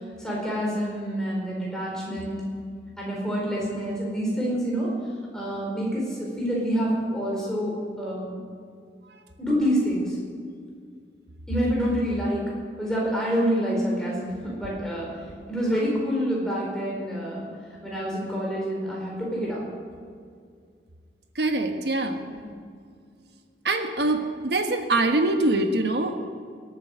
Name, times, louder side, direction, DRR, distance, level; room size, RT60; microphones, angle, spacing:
voice 1, 0.2-2.4 3.0-4.9 5.3-8.4 9.4-10.2 11.5-12.4 12.8-15.1 15.5-17.4 17.8-19.6 22.2-22.5, equal, 5° left, -4 dB, 4.4 m, -27 dB
voice 2, 21.4-22.2 23.6-24.2 24.4-26.3, right 2 dB, 70° right, 6 dB, 1.4 m, -23 dB
17.5 x 9.0 x 6.8 m, 2.2 s
head